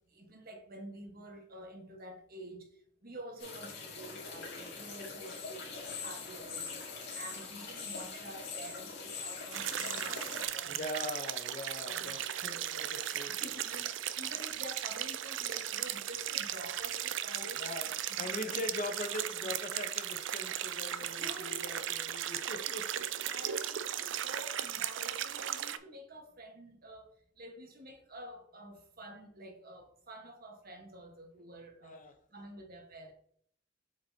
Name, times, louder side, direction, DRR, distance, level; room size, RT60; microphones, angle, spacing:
voice 1, 0.1-10.8 11.8-12.1 13.0-18.6 19.2-19.3 21.0-21.7 23.2-27.1 27.4-32.0 32.3-33.1, right 1 dB, 50° right, 1.4 m, -49 dB
sound 1, 3.4-10.5, left 4 dB, 60° left, 2.4 m, -43 dB
sound 2, 9.5-25.8, right 11 dB, 75° right, 0.5 m, -37 dB
voice 2, 10.7-13.4 17.6-22.9 23.3-23.5 31.8-32.1, left 1 dB, 45° left, 0.9 m, -41 dB
7.9 x 5.3 x 2.8 m
head